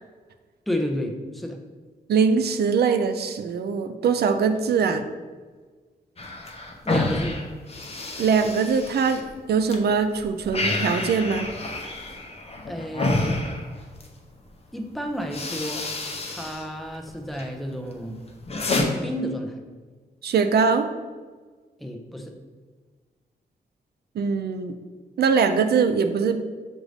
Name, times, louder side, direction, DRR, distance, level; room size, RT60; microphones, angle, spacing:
voice 1, 0.7-1.6 6.8-7.3 12.7-13.4 14.7-15.9 16.3-18.2 19.0-19.6 21.8-22.3, equal, ahead, 3 dB, 0.5 m, -31 dB
voice 2, 2.1-5.0 8.2-9.2 9.5-11.5 20.2-20.9 24.2-24.7 25.2-26.4, right 5 dB, 75° right, 9 dB, 0.4 m, -22 dB
sound 1, 6.2-9.8 10.1-14.2 14.8-14.9 15.2-16.6 16.9-17.5 17.9-18.8, left 2 dB, 40° left, 0.7 m, -29 dB
6.2 x 2.5 x 3.3 m, 1.4 s
cardioid pair, 90°, 17 cm